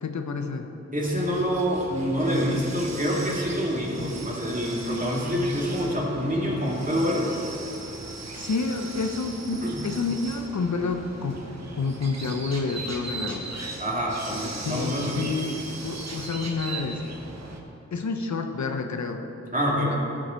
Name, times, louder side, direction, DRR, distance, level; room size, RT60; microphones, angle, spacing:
voice 1, 0.0-0.7 4.0-4.1 8.3-11.5 11.7-13.4 14.3-14.4 14.6-17.0 17.9-19.2 19.7-20.0, left 4 dB, 75° left, 5 dB, 0.8 m, -29 dB
voice 2, 0.9-7.4 9.6-9.8 13.8-15.2 19.5-20.0, equal, 30° right, -4 dB, 2.4 m, -26 dB
sound 1, 1.0-17.6, right 3 dB, 65° right, 1.2 m, -38 dB
13.5 x 6.4 x 4.5 m, 2.9 s
cardioid pair, 55°, 29 cm